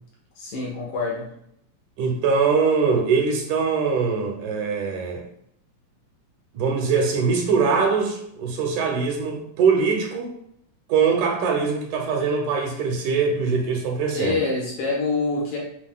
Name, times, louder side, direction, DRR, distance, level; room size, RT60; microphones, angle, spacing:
voice 1, 0.4-1.3 14.1-15.6, left 3 dB, 65° left, -4 dB, 2.1 m, -26 dB
voice 2, 2.0-5.2 6.5-10.4 10.9-14.4, right 5 dB, 80° right, 2 dB, 2.0 m, -22 dB
7.2 x 2.8 x 2.2 m, 0.72 s
omnidirectional pair, 3.7 m